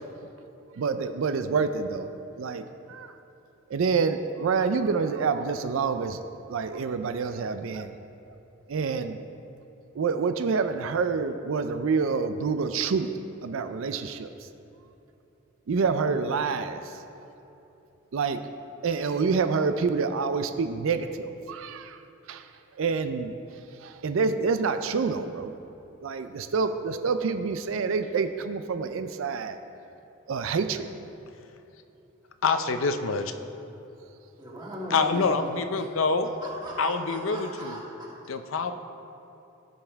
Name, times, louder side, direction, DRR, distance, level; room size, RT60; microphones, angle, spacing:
voice 1, 0.8-2.1 2.4-3.2 3.7-6.2 6.5-7.9 8.7-9.2 9.9-13.1 13.4-14.5 15.7-17.0 18.1-18.4 18.8-22.0 22.3-22.5 22.8-23.4 23.8-25.5 26.0-29.6 30.3-30.9, right 5 dB, 75° right, 9 dB, 0.4 m, -27 dB
voice 2, 32.4-33.3 34.9-36.3 36.8-37.8 38.3-38.7, left 4 dB, 80° left, 8 dB, 0.5 m, -26 dB
voice 3, 34.4-35.9 36.4-38.1, right 1 dB, 20° right, -6 dB, 2.2 m, -38 dB
16.5 x 5.5 x 3.4 m, 2.9 s
head